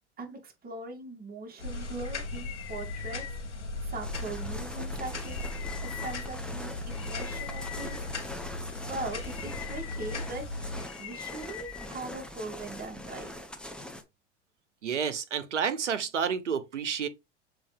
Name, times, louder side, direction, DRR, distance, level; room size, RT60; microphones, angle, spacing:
voice 1, 0.2-3.2 3.8-5.5 5.8-8.1 8.9-10.4 11.0-13.3, right 2 dB, 25° right, 2.6 m, -40 dB
sound 1, 1.6-10.8, left 2 dB, 85° left, 2.0 m, -37 dB
sound 2, 1.8-12.4, left 13 dB, 40° left, 1.3 m, -46 dB
sound 3, 4.0-14.0, left 1 dB, 5° left, 1.4 m, -42 dB
voice 2, 14.8-17.1, right 7 dB, 85° right, 0.9 m, -30 dB
7.0 x 3.9 x 3.4 m
figure-of-eight pair, 75°, 35 cm